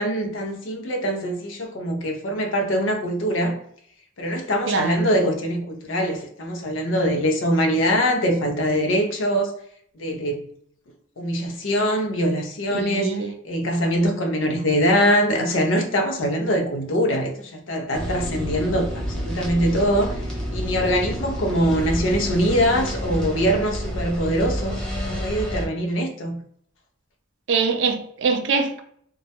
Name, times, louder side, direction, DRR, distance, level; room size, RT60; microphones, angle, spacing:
voice 1, 0.0-3.6 4.2-9.5 10.0-10.4 11.2-13.2 13.4-20.2 20.5-26.4, equal, 75° left, 0.5 m, -23 dB
voice 2, 12.7-13.3 27.5-28.8, right 4 dB, 65° right, 0.3 m, -23 dB
sound 1, 17.9-25.6, equal, 5° left, 0.5 m, -29 dB
2.2 x 2.0 x 2.7 m
head